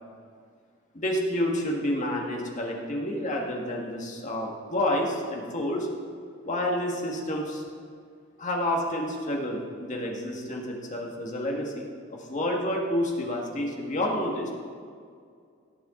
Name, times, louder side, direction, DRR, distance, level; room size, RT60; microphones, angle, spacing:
voice 1, 0.9-5.9 6.4-7.6 8.4-14.5, left 1 dB, 35° left, 0 dB, 1.8 m, -29 dB
17.5 x 7.2 x 3.8 m, 2.2 s
head